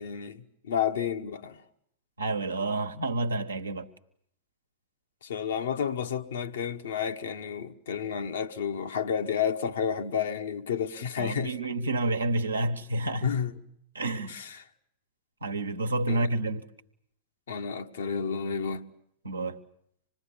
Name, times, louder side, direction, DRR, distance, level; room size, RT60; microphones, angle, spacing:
voice 1, 0.0-1.6 5.2-11.5 13.2-13.5 14.3-14.7 16.1-16.3 17.5-18.9, left 7 dB, 65° left, 1.1 m, -31 dB
voice 2, 2.2-3.9 11.2-13.3 13.9-14.4 15.4-16.7 19.2-19.6, right 2 dB, 75° right, 1.1 m, -29 dB
26.0 x 20.5 x 8.6 m
figure-of-eight pair, 90°, 0 cm